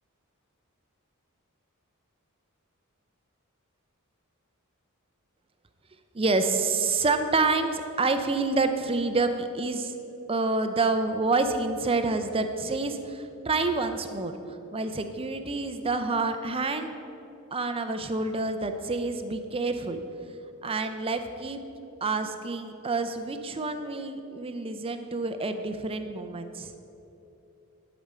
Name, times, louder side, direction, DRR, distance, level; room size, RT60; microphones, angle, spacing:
voice 1, 6.1-9.9 10.3-14.4 14.7-16.9 17.5-20.0 20.6-21.7 22.0-26.7, right 3 dB, 25° right, 8 dB, 0.6 m, -28 dB
11.0 x 5.1 x 6.7 m, 2.8 s
head